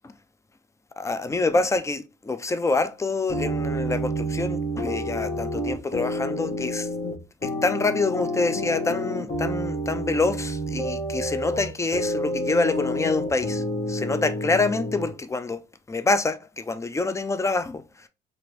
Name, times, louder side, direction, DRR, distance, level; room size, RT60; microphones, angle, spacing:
voice 1, 1.0-6.9 7.4-15.6 15.9-17.8, left 3 dB, 15° left, 0.4 m, -26 dB
sound 1, 3.3-15.1, equal, 30° left, 1.0 m, -29 dB
2.9 x 2.5 x 3.1 m
cardioid pair, 90°, 20 cm